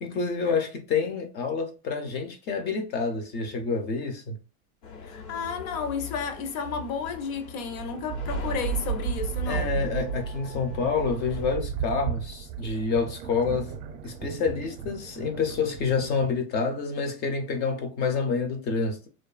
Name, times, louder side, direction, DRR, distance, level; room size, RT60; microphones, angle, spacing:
voice 1, 0.0-4.4 9.5-13.7 14.0-19.1, left 5 dB, 25° left, 0.4 m, -28 dB
sound 1, 4.8-11.6, left 6 dB, 85° left, 1.1 m, -42 dB
voice 2, 5.0-9.9, left 5 dB, 65° left, 0.7 m, -32 dB
sound 2, 7.5-16.4, right 7 dB, 45° right, 0.6 m, -34 dB
2.5 x 2.3 x 2.3 m
hypercardioid pair, 115°, 46 cm